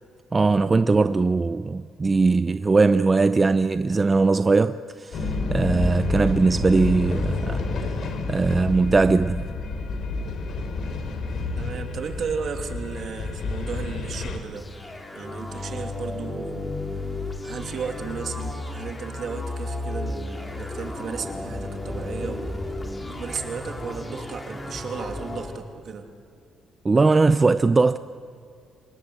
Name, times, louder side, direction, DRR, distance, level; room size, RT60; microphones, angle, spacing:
voice 1, 0.3-7.6 8.3-9.4 26.8-28.0, right 3 dB, 25° right, 0.5 m, -20 dB
sound 1, 5.1-14.4, left 3 dB, 65° left, 3.3 m, -29 dB
voice 2, 11.6-14.7 15.1-16.8 17.4-22.6 23.2-26.1, right 6 dB, 60° right, 2.7 m, -34 dB
sound 2, 14.5-25.6, left 2 dB, 20° left, 3.0 m, -33 dB
26.5 x 19.5 x 8.1 m
cardioid pair, 90°, 0 cm